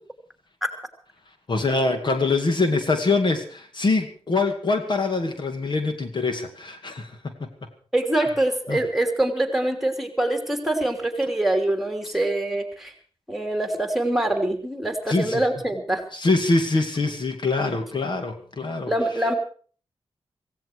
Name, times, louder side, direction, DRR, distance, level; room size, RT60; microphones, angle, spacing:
voice 1, 1.5-7.7 8.7-8.8 12.0-12.1 15.1-15.4 16.1-18.9, left 3 dB, 50° left, 6 dB, 2.3 m, -24 dB
voice 2, 7.9-12.9 13.3-16.0 18.9-19.3, right 1 dB, ahead, 6 dB, 3.1 m, -24 dB
17.0 x 16.0 x 4.8 m, 0.42 s
cardioid pair, 85°, 10 cm